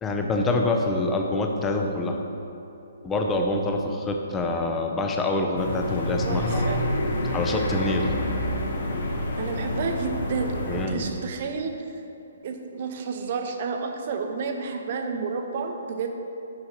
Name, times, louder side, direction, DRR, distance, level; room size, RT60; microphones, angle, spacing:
voice 1, 0.0-2.2 3.0-6.6 7.3-8.1 10.7-11.1, left 2 dB, 15° left, 2 dB, 0.6 m, -26 dB
sound 1, 5.6-10.9, left 1 dB, 55° left, 0.9 m, -28 dB
voice 2, 6.3-6.8 9.4-12.0 12.4-16.1, right 5 dB, 45° right, 4 dB, 0.7 m, -31 dB
6.5 x 5.8 x 4.2 m, 2.9 s
figure-of-eight pair, 130°, 0 cm